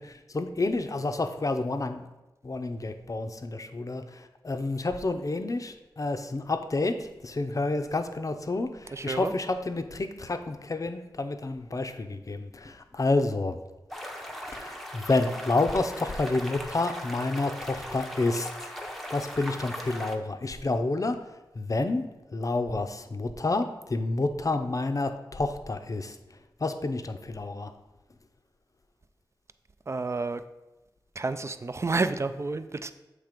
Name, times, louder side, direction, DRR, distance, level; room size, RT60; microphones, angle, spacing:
voice 1, 0.0-2.1 2.4-13.6 14.5-18.7 19.1-21.2 21.6-22.0 22.3-26.2 26.6-27.7, left 2 dB, 45° left, 8 dB, 0.5 m, -29 dB
voice 2, 8.9-9.3 29.9-30.4 31.2-32.9, right 3 dB, 35° right, 11 dB, 0.4 m, -30 dB
sound 1, 13.9-20.1, equal, ahead, 0.7 m, -39 dB
7.4 x 3.4 x 5.0 m, 1.0 s
wide cardioid pair, 80°, 8 cm